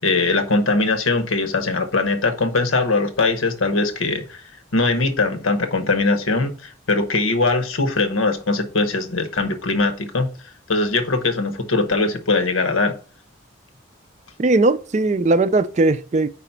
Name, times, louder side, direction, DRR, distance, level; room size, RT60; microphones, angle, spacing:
voice 1, 0.0-4.4 4.7-10.3 10.7-13.0, left 3 dB, 90° left, 1.0 m, -21 dB
voice 2, 14.4-16.3, right 2 dB, 35° right, 0.4 m, -18 dB
4.9 x 4.1 x 5.6 m
head